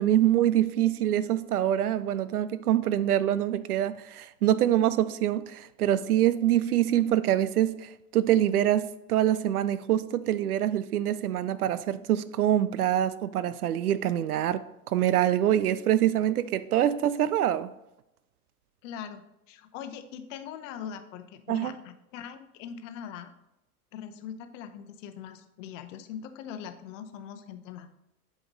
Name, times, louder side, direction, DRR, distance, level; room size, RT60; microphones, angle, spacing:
voice 1, 0.0-17.7 21.5-21.7, right 11 dB, 80° right, 0.5 m, -25 dB
voice 2, 18.8-23.3 23.9-27.9, left 8 dB, 55° left, 0.9 m, -41 dB
7.8 x 5.3 x 3.9 m
figure-of-eight pair, 80°, 44 cm